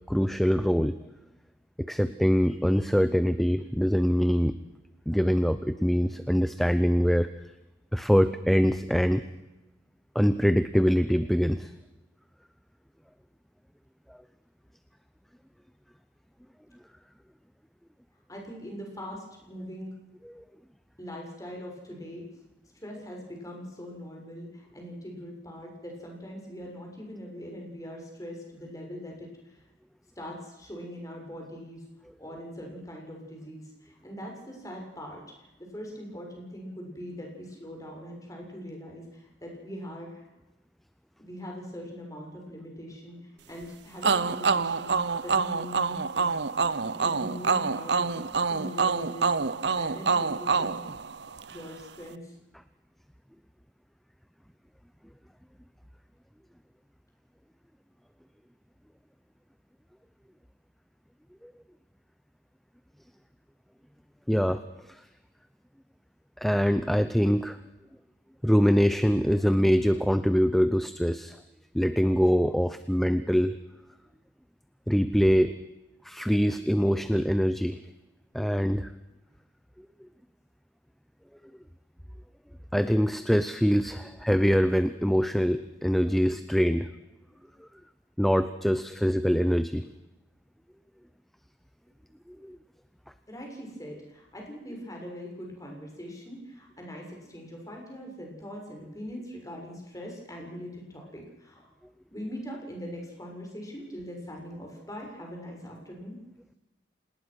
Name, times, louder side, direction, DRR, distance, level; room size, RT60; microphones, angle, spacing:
voice 1, 0.1-1.0 1.8-4.5 5.1-7.3 7.9-9.2 10.1-11.7 14.1-14.2 20.2-20.4 61.4-61.5 64.3-65.0 66.4-67.6 68.4-71.4 71.7-73.6 74.9-75.5 76.0-77.8 78.3-78.9 82.7-86.9 87.6-87.7 88.2-89.8 92.3-92.6, equal, ahead, 12 dB, 0.7 m, -24 dB
voice 2, 18.3-19.9 21.0-22.3 22.8-29.6 30.2-31.8 32.2-40.3 41.2-46.3 46.8-48.2 48.5-50.9 51.5-52.4 93.3-101.7 102.1-106.2, equal, 20° left, 0 dB, 6.9 m, -41 dB
sound 1, 44.0-51.6, right 5 dB, 65° right, 0.9 m, -27 dB
27.0 x 20.0 x 6.4 m, 0.99 s
head